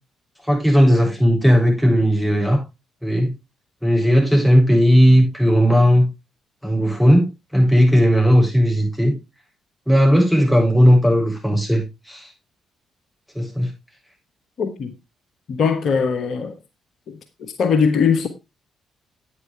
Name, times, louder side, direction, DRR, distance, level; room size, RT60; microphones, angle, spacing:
voice 1, 0.5-2.6 3.0-3.3 3.8-6.1 6.6-9.1 9.9-12.3 13.3-13.7, equal, ahead, 7.4 m, -16 dB
voice 2, 14.6-14.9 15.5-16.6 17.1-18.3, left 6 dB, 60° left, 1.3 m, -21 dB
11.0 x 9.3 x 3.4 m
hypercardioid pair, 50°, 0 cm